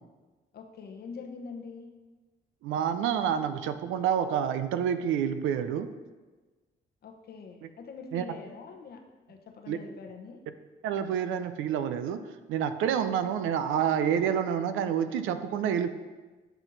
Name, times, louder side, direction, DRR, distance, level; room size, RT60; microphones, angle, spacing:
voice 1, 0.5-1.9 7.0-9.0 9.3-10.4, left 5 dB, 55° left, 4 dB, 0.9 m, -44 dB
voice 2, 2.6-5.9 7.6-7.7 8.1-8.2 9.7-9.8 10.8-12.2 12.5-15.9, right 8 dB, 85° right, 10 dB, 0.5 m, -28 dB
7.9 x 4.4 x 3.9 m, 1.3 s
cardioid pair, 90°, 20 cm